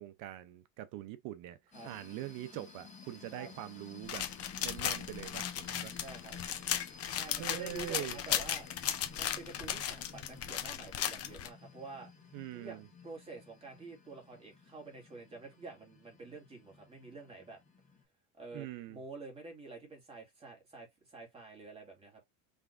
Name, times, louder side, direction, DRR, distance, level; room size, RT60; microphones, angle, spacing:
voice 1, 0.0-1.6 1.8-4.3 4.6-5.9 7.4-8.2 12.3-12.8 18.5-19.0, right 13 dB, 60° right, 0.7 m, -43 dB
sound 1, 1.7-18.0, left 5 dB, 20° left, 1.7 m, -53 dB
sound 2, 4.1-11.5, left 10 dB, 40° left, 0.9 m, -36 dB
voice 2, 6.0-6.4 7.1-8.7 9.1-12.1 12.5-17.6 18.3-22.2, right 3 dB, 15° right, 2.3 m, -48 dB
5.7 x 3.5 x 2.5 m
cardioid pair, 140°, 37 cm